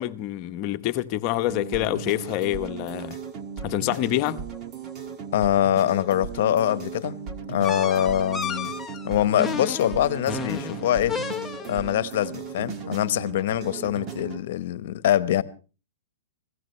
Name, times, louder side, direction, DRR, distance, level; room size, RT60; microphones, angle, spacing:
voice 1, 0.0-3.2 3.6-4.4, left 14 dB, 40° left, 1.0 m, -26 dB
sound 1, 1.5-14.4, right 6 dB, 30° right, 1.6 m, -37 dB
voice 2, 5.3-7.2 7.5-8.7 9.0-11.2 11.7-15.4, left 11 dB, 60° left, 1.0 m, -24 dB
sound 2, 7.6-11.9, left 5 dB, 5° left, 1.0 m, -33 dB
25.0 x 16.5 x 3.2 m
hypercardioid pair, 145°, 0 cm